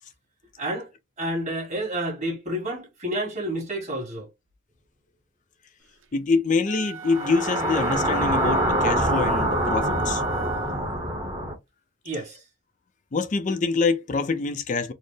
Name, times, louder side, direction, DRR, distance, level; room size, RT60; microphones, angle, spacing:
voice 1, 0.6-0.9 1.2-4.3 12.0-12.4, right 1 dB, 35° right, 1.6 m, -29 dB
voice 2, 6.1-10.2 13.1-14.9, left 4 dB, 40° left, 0.4 m, -25 dB
sound 1, 6.6-10.9, right 6 dB, 75° right, 0.7 m, -37 dB
sound 2, 7.1-11.5, right 1 dB, 20° right, 0.9 m, -25 dB
4.2 x 2.0 x 3.2 m
head